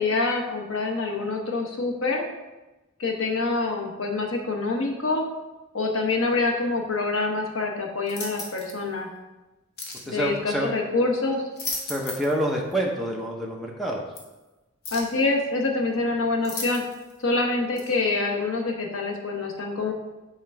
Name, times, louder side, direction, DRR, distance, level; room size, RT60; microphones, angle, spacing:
voice 1, 0.0-2.3 3.0-5.2 5.7-9.1 10.1-11.4 14.9-16.8 17.2-19.9, left 3 dB, 70° left, 1 dB, 1.0 m, -26 dB
sound 1, 8.1-8.8 9.8-10.1 11.3-12.4 12.7-12.8 14.1-14.2 14.8-15.2 16.4-17.1 17.8-17.9, left 3 dB, 50° left, 1.0 m, -35 dB
voice 2, 10.1-10.7 11.9-14.0, equal, ahead, -2 dB, 0.7 m, -27 dB
5.8 x 3.8 x 4.4 m, 1.1 s
head